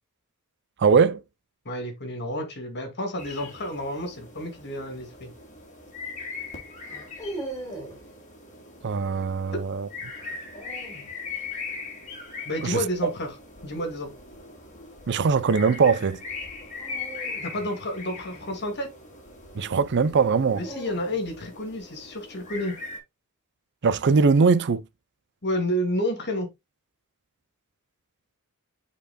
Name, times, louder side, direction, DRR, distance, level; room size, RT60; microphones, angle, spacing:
voice 1, 0.8-1.2 8.8-9.9 12.6-13.1 15.1-16.2 19.5-20.6 23.8-24.8, right 5 dB, 50° right, 0.5 m, -21 dB
voice 2, 1.6-5.3 9.5-9.6 12.4-13.3 13.6-14.1 17.4-18.9 20.5-22.8 25.4-26.5, left 1 dB, 50° left, 2.8 m, -30 dB
sound 1, 3.2-23.0, left 4 dB, 35° left, 3.0 m, -40 dB
sound 2, 4.9-5.3 6.8-8.1 10.2-11.1 13.6-14.0 16.8-19.1 20.2-21.5, right 2 dB, 15° left, 3.5 m, -41 dB
8.8 x 5.2 x 2.3 m
head